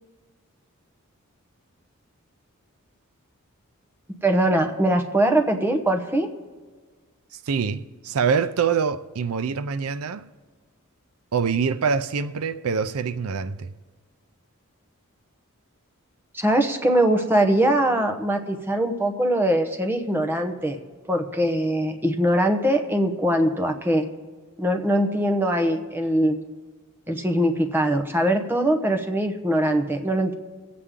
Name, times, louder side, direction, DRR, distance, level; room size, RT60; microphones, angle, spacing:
voice 1, 4.2-6.3 16.3-20.8 21.1-24.1 24.6-26.4 27.1-30.3, right 1 dB, 10° right, 0.9 m, -22 dB
voice 2, 7.3-10.2 11.3-13.7, right 6 dB, 80° right, 0.5 m, -25 dB
23.0 x 8.4 x 3.7 m
head